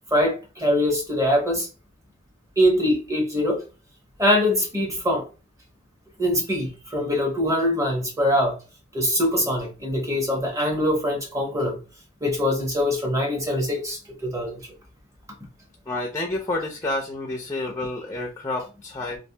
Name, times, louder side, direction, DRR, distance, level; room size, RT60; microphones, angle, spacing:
voice 1, 0.1-1.7 2.6-3.6 4.2-5.2 6.2-8.6 8.9-11.8 12.2-14.6, left 1 dB, 15° right, 1 dB, 0.9 m, -23 dB
voice 2, 15.9-19.2, left 2 dB, 15° left, 0 dB, 0.4 m, -29 dB
3.2 x 2.5 x 2.7 m, 0.33 s
head